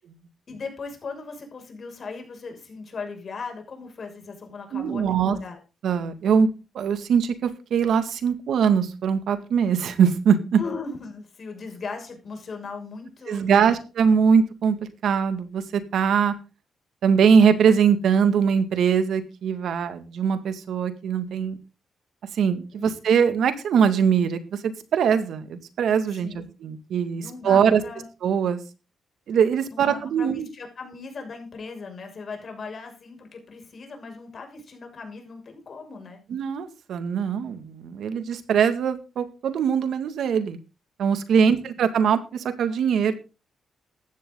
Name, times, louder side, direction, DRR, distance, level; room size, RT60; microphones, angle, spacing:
voice 1, 0.5-5.6 10.6-13.8 22.7-22.9 26.1-26.5 27.2-28.1 29.7-36.2 41.4-41.6, left 4 dB, 50° left, 4 dB, 6.4 m, -38 dB
voice 2, 4.7-5.4 5.8-6.5 6.7-10.6 13.3-16.3 17.0-21.6 22.3-27.8 28.2-28.6 29.3-30.5 36.3-40.6 41.0-43.1, right 7 dB, 75° right, 10 dB, 2.1 m, -22 dB
15.5 x 12.0 x 3.9 m, 0.32 s
cardioid pair, 90°, 0 cm